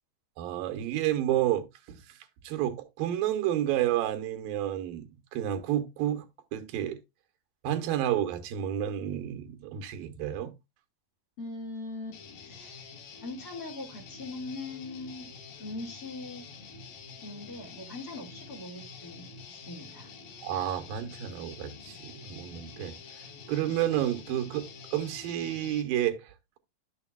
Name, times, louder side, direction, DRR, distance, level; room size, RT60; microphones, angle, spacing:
voice 1, 0.4-1.6 2.4-6.2 6.5-7.0 7.6-10.5 20.4-23.0 23.5-26.3, right 12 dB, 85° right, 2.7 m, -30 dB
voice 2, 11.4-12.9 13.2-15.3 15.6-16.4 17.2-20.1, left 2 dB, 40° left, 1.5 m, -41 dB
Guitar, 12.1-25.8, left 5 dB, 85° left, 3.4 m, -47 dB
11.5 x 6.9 x 2.3 m
omnidirectional pair, 4.1 m